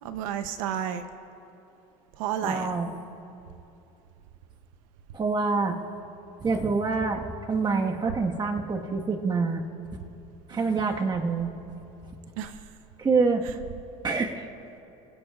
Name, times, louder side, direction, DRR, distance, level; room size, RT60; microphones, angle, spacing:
voice 1, 0.0-1.1 2.2-2.7 10.5-11.0 12.4-12.7, right 9 dB, 85° right, 9 dB, 0.8 m, -32 dB
voice 2, 2.4-2.9 5.1-5.8 6.4-9.6 10.5-11.5 13.0-13.4 14.0-14.5, right 4 dB, 25° right, 2 dB, 1.5 m, -26 dB
29.0 x 16.0 x 2.5 m, 2.8 s
supercardioid pair, 110°, 17 cm